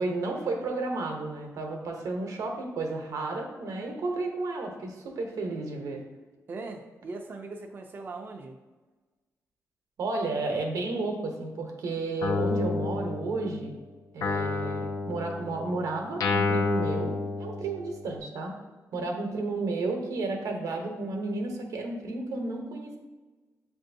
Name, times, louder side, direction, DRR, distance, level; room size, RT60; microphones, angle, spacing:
voice 1, 0.0-6.0 10.0-13.7 14.1-18.5 18.9-23.0, right 3 dB, 85° right, 2 dB, 0.8 m, -32 dB
voice 2, 6.5-8.6, right 3 dB, 35° right, 2 dB, 0.4 m, -40 dB
Guitar, 12.2-13.7 14.2-18.1, left 3 dB, 75° left, 0.6 m, -30 dB
7.4 x 2.6 x 2.6 m, 1.3 s
wide cardioid pair, 120°, 6 cm